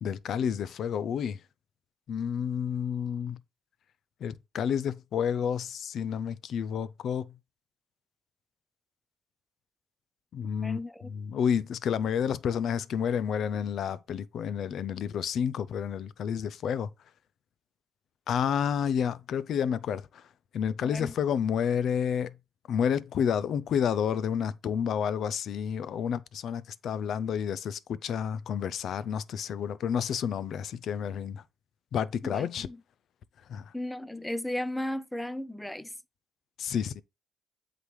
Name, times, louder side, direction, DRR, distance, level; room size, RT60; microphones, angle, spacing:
voice 1, 0.0-1.4 2.1-3.4 4.2-7.3 10.3-16.9 18.3-20.2 20.5-22.3 22.7-31.4 31.9-32.7 33.5-33.6 36.6-37.0, left 8 dB, 65° left, 0.5 m, -30 dB
voice 2, 10.6-11.1 20.8-21.1 32.2-32.8 33.7-35.9, left 1 dB, 5° left, 0.6 m, -35 dB
8.0 x 3.9 x 3.2 m
supercardioid pair, 70°, 0 cm